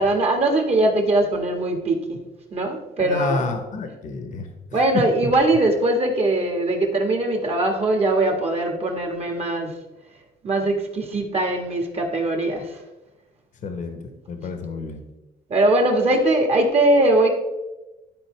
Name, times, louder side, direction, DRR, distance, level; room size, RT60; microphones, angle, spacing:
voice 1, 0.0-2.2 2.5-3.4 4.7-9.7 10.4-12.8 14.4-14.5 15.5-17.3, right 2 dB, 40° right, 3 dB, 1.6 m, -21 dB
voice 2, 3.0-4.8 13.6-14.0 14.3-15.0, left 3 dB, 50° left, 6 dB, 1.0 m, -30 dB
12.0 x 4.2 x 3.3 m, 1.0 s
cardioid pair, 110°, 17 cm